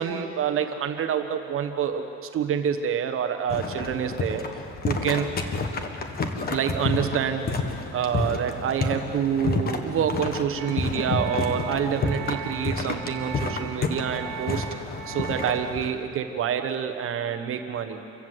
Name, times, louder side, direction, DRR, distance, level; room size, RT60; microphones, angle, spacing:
voice 1, 0.0-4.4 4.8-5.3 6.5-7.5 7.9-14.6 15.1-18.0, right 8 dB, 45° right, 6 dB, 1.2 m, -27 dB
sound 1, 3.5-15.9, left 3 dB, 30° left, 1.4 m, -30 dB
sound 2, 10.6-15.8, right 9 dB, 70° right, 1.6 m, -39 dB
27.5 x 15.5 x 8.0 m, 2.7 s
cardioid pair, 165°, 31 cm